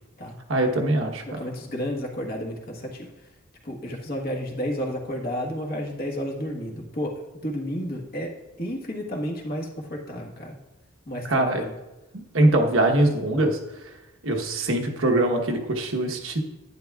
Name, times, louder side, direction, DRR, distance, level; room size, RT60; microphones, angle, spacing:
voice 1, 0.5-1.4 11.2-11.6 12.3-13.6 14.2-16.4, right 1 dB, 85° right, 3 dB, 1.1 m, -22 dB
voice 2, 1.3-3.1 3.6-7.1 7.4-8.3 8.6-10.6 11.1-11.7, equal, 50° left, 0 dB, 1.4 m, -31 dB
10.5 x 10.0 x 2.4 m, 1.0 s
head